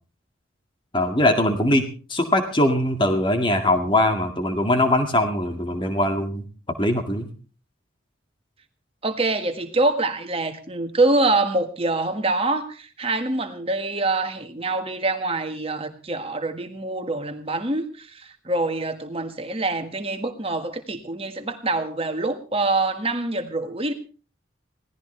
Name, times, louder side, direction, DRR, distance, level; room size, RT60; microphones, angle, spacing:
voice 1, 0.9-6.4 6.8-7.3, left 1 dB, 25° left, 6 dB, 2.1 m, -21 dB
voice 2, 9.0-23.9, right 2 dB, 30° right, 7 dB, 1.7 m, -25 dB
22.5 x 17.5 x 3.3 m, 0.36 s
head